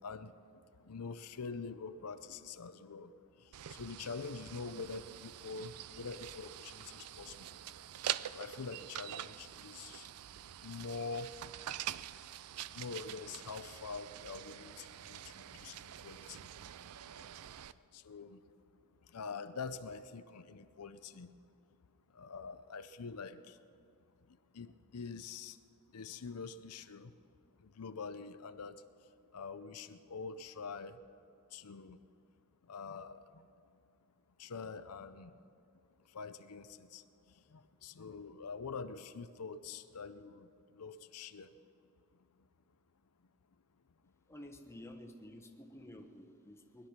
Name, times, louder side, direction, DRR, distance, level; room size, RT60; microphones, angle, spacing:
voice 1, 0.0-10.1 10.5-11.3 11.7-11.8 12.1-16.5 17.1-18.5 19.0-21.6 22.1-23.8 24.2-25.6 25.9-27.2 27.6-31.0 31.5-32.0 32.6-33.8 34.4-35.4 36.0-41.5 42.1-42.5 44.0-44.1, left 4 dB, 90° left, 11 dB, 0.6 m, -46 dB
sound 1, 3.5-17.7, right 11 dB, 80° right, 0.4 m, -45 dB
voice 2, 44.3-46.9, left 1 dB, 10° left, 3 dB, 1.0 m, -51 dB
20.5 x 11.5 x 5.9 m, 2.6 s
head